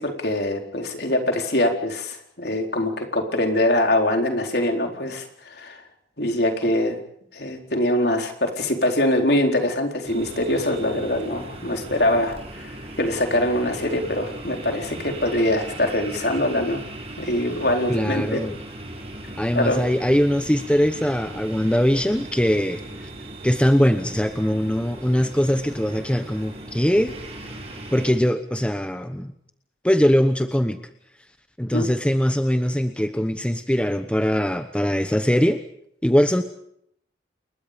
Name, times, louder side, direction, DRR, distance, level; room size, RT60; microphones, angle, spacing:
voice 1, 0.0-5.8 6.2-7.0 7.3-12.7 13.0-16.8 17.2-18.4 19.5-19.8 31.7-31.9, left 1 dB, 60° left, 3 dB, 4.3 m, -23 dB
mysterious nature sound by trinity in the trees, 10.0-28.1, right 1 dB, 35° right, 6.7 m, -38 dB
voice 2, 17.9-18.5 19.4-23.1 23.4-27.1 27.9-29.3 29.8-30.8 31.6-35.6 36.0-36.4, equal, 5° left, 8 dB, 1.0 m, -21 dB
29.0 x 21.5 x 5.3 m, 0.70 s
head